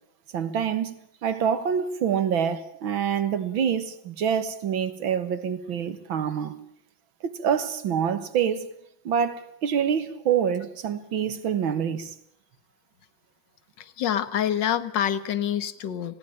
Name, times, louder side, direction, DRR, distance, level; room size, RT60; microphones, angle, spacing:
voice 1, 0.3-0.9 1.2-6.6 7.2-8.7 9.0-12.1, right 8 dB, 85° right, 2.3 m, -26 dB
voice 2, 13.8-16.2, left 10 dB, 65° left, 1.9 m, -27 dB
20.0 x 17.5 x 8.8 m
omnidirectional pair, 2.1 m